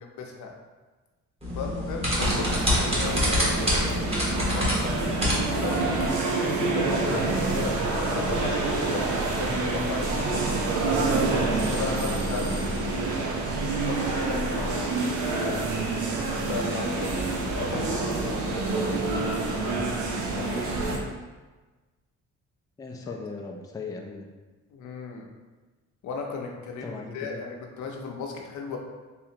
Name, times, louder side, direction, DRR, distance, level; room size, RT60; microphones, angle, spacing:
voice 1, 0.2-0.5 1.6-4.1 4.5-6.1 6.6-10.5 11.4-13.1 13.8-15.6 16.4-20.1 23.1-23.2 24.7-25.3 26.0-28.8, left 4 dB, 75° left, 1 dB, 0.7 m, -36 dB
sound 1, 1.4-6.1, left 1 dB, 20° right, 1.3 m, -27 dB
sound 2, 2.2-21.0, right 3 dB, 75° right, 0.7 m, -27 dB
voice 2, 22.8-24.3 26.8-27.4, left 4 dB, 10° left, 1 dB, 0.4 m, -38 dB
3.5 x 3.1 x 2.9 m, 1.3 s
cardioid pair, 90°, 30 cm